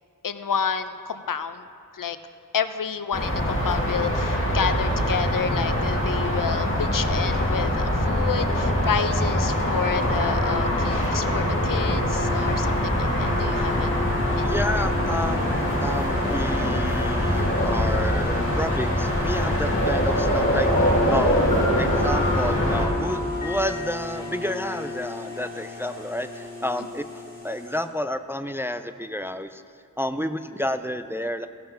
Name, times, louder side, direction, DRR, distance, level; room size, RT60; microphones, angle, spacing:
voice 1, 0.2-1.7 1.9-2.2 2.5-13.9 14.4-14.8 26.8-26.9, left 7 dB, 80° left, 11 dB, 0.6 m, -30 dB
sound 1, 3.1-22.9, equal, 40° left, 2.0 m, -23 dB
sound 2, 10.0-27.8, left 3 dB, 25° right, 2.8 m, -34 dB
voice 2, 14.4-15.5 15.8-21.4 21.8-29.6 30.0-31.5, left 1 dB, 10° right, 10 dB, 0.3 m, -30 dB
Piano, 20.7-25.6, left 1 dB, 20° left, 2.4 m, -35 dB
15.5 x 5.6 x 5.6 m, 2.6 s
wide cardioid pair, 65°, 32 cm